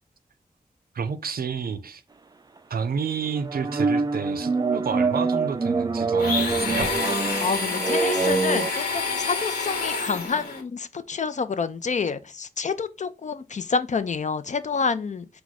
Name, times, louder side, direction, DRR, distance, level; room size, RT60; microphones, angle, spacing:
voice 1, 0.9-2.0 2.7-6.9, right 6 dB, 75° right, 0.5 m, -30 dB
sound 1, 3.3-8.7, right 4 dB, 25° right, 0.4 m, -25 dB
Domestic sounds home sounds, 6.2-10.6, left 3 dB, 90° left, 1.1 m, -28 dB
voice 2, 7.4-15.3, left 5 dB, 50° left, 0.4 m, -28 dB
4.7 x 2.3 x 4.0 m
wide cardioid pair, 95°, 15 cm